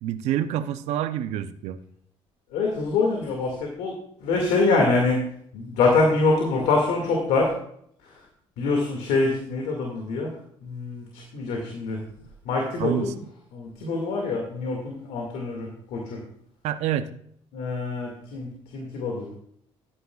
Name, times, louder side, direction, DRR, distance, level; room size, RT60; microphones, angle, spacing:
voice 1, 0.0-1.8 12.8-13.1 16.6-17.1, right 11 dB, 80° right, 10 dB, 0.7 m, -27 dB
voice 2, 2.5-3.9 4.2-5.2 5.5-7.5 8.0-8.2 8.6-10.3 10.6-12.0 12.4-13.1 13.5-16.2 17.5-19.3, left 3 dB, 85° left, 0 dB, 2.2 m, -25 dB
13.0 x 10.0 x 2.4 m, 0.67 s
cardioid pair, 120°, 11 cm